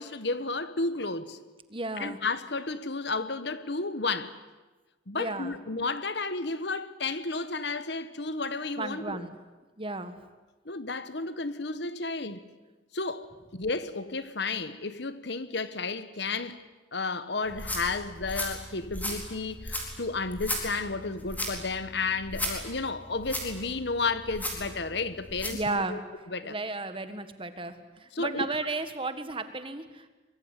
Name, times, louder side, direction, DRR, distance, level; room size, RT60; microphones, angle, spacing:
voice 1, 0.0-1.4 2.0-4.4 5.1-9.3 10.6-12.5 12.9-16.6 16.9-26.0 26.3-26.6 28.1-28.5, left 3 dB, 60° left, 1.3 m, -32 dB
voice 2, 1.7-2.2 5.1-5.6 8.8-9.4 9.8-10.2 25.5-26.0 26.4-30.1, right 3 dB, 25° right, 1.7 m, -34 dB
sound 1, 17.4-25.6, left 1 dB, 10° left, 4.3 m, -36 dB
24.5 x 22.0 x 10.0 m
head